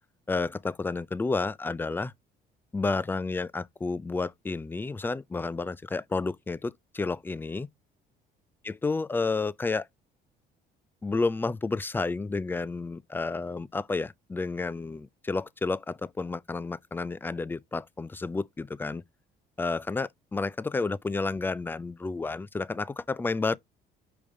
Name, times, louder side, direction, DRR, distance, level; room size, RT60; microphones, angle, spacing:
voice 1, 0.3-2.1 2.7-7.7 8.6-9.9 11.0-19.0 19.6-23.6, left 3 dB, 10° left, 0.3 m, -31 dB
5.2 x 5.2 x 3.6 m
cardioid pair, 110°, 17 cm